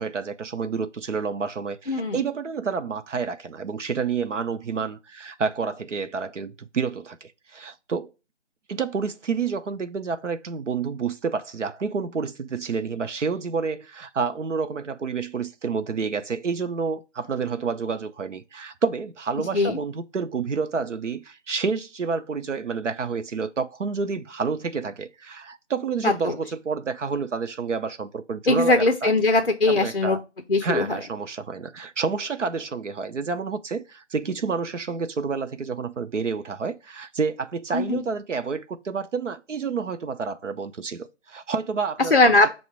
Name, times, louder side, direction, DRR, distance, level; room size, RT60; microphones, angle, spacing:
voice 1, 0.0-8.1 8.7-29.1 29.7-30.2 30.6-42.2, right 5 dB, 80° right, 0.6 m, -29 dB
voice 2, 1.9-2.2 19.5-19.8 26.0-26.3 28.5-30.2 30.5-31.0 37.7-38.0 42.1-42.5, left 2 dB, 50° left, 0.4 m, -20 dB
5.6 x 2.1 x 4.4 m
figure-of-eight pair, 160°, 36 cm